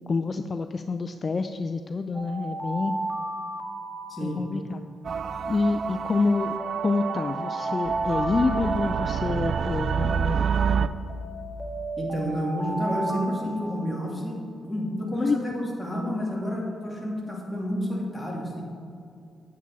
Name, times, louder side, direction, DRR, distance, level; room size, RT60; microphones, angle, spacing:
voice 1, 0.1-3.0 4.2-4.8 5.5-6.6 6.8-10.5 15.2-15.4, left 3 dB, 40° left, 8 dB, 0.3 m, -27 dB
Alarm, 2.1-4.8 6.1-9.8 11.1-14.3, right 2 dB, 15° right, 1.5 m, -34 dB
voice 2, 4.1-4.4 12.0-14.4 14.7-18.6, equal, 5° left, -3 dB, 2.4 m, -30 dB
sound 1, 5.0-10.9, right 6 dB, 60° right, 0.3 m, -28 dB
8.6 x 8.3 x 4.1 m, 2.5 s
cardioid pair, 80°, 0 cm